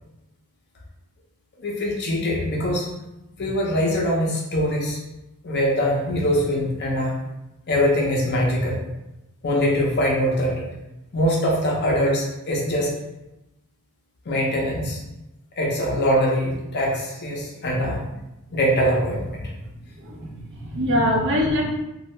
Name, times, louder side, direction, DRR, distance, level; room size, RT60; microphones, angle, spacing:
voice 1, 1.6-2.9 3.4-5.0 5.4-7.2 7.7-8.8 9.4-10.6 11.1-12.9 14.3-15.0 15.6-18.1 18.5-19.4, equal, 50° left, -2 dB, 0.6 m, -22 dB
voice 2, 19.9-21.6, left 1 dB, 55° right, -1 dB, 0.6 m, -23 dB
2.7 x 2.3 x 3.1 m, 0.94 s
head